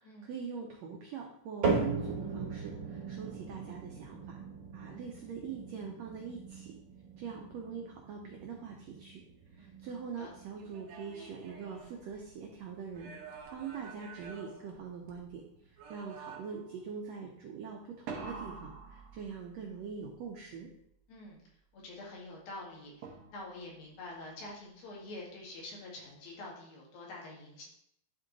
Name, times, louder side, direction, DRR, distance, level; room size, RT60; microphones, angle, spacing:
voice 1, 0.0-4.4 4.7-6.8 7.2-9.2 9.5-20.7, right 6 dB, 85° right, 1 dB, 1.5 m, -43 dB
sound 1, 1.6-17.9 18.3-18.8 19.4-19.5 20.3-20.4, right 4 dB, 40° right, 2.9 m, -40 dB
voice 2, 9.6-9.9 10.2-10.3 21.1-21.4 21.7-27.6, left 2 dB, 85° left, -3 dB, 3.7 m, -46 dB
sound 2, 10.6-12.5 12.9-15.3 15.8-16.7 18.1-19.7 23.0-23.7, right 4 dB, 65° right, 1.9 m, -47 dB
11.0 x 3.6 x 3.9 m, 0.73 s
omnidirectional pair, 4.1 m